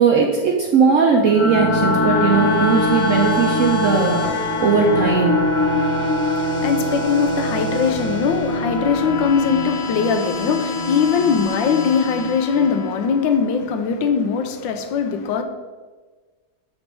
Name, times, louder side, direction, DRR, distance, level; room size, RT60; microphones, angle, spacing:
voice 1, 0.0-5.4, right 5 dB, 70° right, 0.7 m, -18 dB
sound 1, 0.8-11.0, left 2 dB, 60° left, 0.9 m, -25 dB
sound 2, 1.2-13.6, left 1 dB, 40° left, 0.6 m, -25 dB
voice 2, 6.2-15.4, left 6 dB, 80° left, 1.4 m, -21 dB
6.7 x 4.1 x 4.6 m
omnidirectional pair, 2.0 m